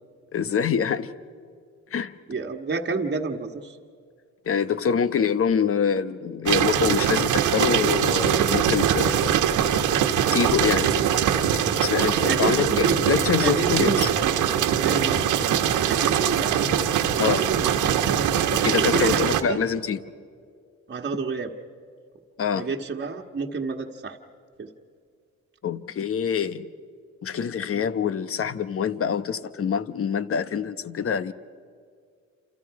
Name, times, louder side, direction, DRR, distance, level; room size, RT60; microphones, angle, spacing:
voice 1, 0.3-1.1 1.9-2.2 4.4-9.3 10.3-11.3 11.8-14.1 17.2-17.5 18.5-20.0 22.4-22.7 25.6-26.7 27.2-31.3, left 7 dB, 50° left, 13 dB, 1.1 m, -25 dB
voice 2, 2.3-3.8 12.3-13.0 13.4-14.3 14.8-16.6 17.1-17.7 18.8-19.6 20.9-21.5 22.5-24.2 24.6-24.7 27.7-27.8, right 4 dB, 35° right, 1 dB, 1.5 m, -29 dB
sound 1, 6.5-19.4, right 9 dB, 85° right, 1.6 m, -22 dB
28.5 x 28.0 x 4.8 m, 2.2 s
cardioid pair, 90°, 30 cm